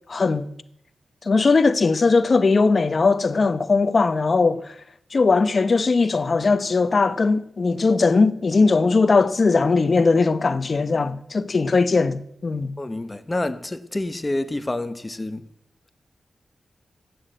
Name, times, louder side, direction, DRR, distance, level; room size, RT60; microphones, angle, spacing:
voice 1, 0.1-0.5 1.2-4.7 5.1-12.8, left 4 dB, 45° left, 0.8 m, -19 dB
voice 2, 12.8-15.5, left 2 dB, 20° left, 1.0 m, -28 dB
15.0 x 9.4 x 7.9 m
wide cardioid pair, 110°, 0 cm